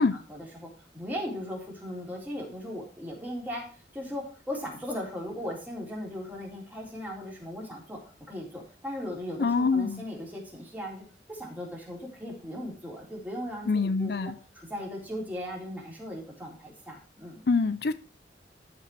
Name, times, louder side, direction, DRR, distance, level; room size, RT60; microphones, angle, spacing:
voice 1, 0.3-3.6 3.9-8.0 8.3-17.4, equal, 10° right, 3.8 m, -38 dB
voice 2, 9.4-10.0 13.7-14.4 17.5-17.9, left 4 dB, 60° left, 0.5 m, -25 dB
13.5 x 5.4 x 4.7 m
head